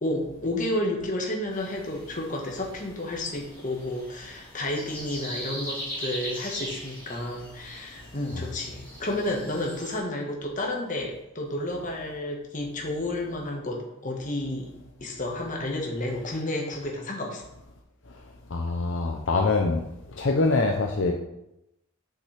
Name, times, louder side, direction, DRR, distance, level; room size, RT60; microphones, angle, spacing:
voice 1, 0.0-14.7 15.0-17.4, left 1 dB, 40° left, 0 dB, 1.4 m, -31 dB
sound 1, 1.5-10.0, equal, 10° left, 3.1 m, -40 dB
voice 2, 18.5-19.8 20.2-21.1, left 3 dB, 65° left, 2 dB, 0.7 m, -24 dB
8.1 x 6.4 x 3.4 m, 0.86 s
head